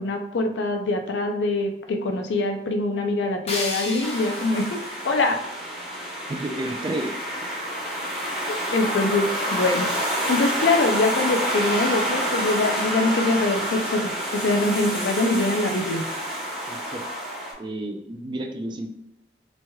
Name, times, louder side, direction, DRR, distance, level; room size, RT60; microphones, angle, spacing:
voice 1, 0.0-4.8 5.0-5.4 8.7-9.9 10.3-16.0, left 2 dB, 85° left, 4 dB, 0.4 m, -24 dB
sound 1, 3.5-6.4, left 2 dB, 35° left, 0.6 m, -35 dB
sound 2, 4.0-17.5, equal, 5° right, 1.0 m, -28 dB
voice 2, 6.3-7.1 16.7-17.0 17.6-18.9, right 1 dB, 25° right, 3 dB, 0.3 m, -31 dB
3.1 x 2.9 x 2.2 m, 0.83 s
head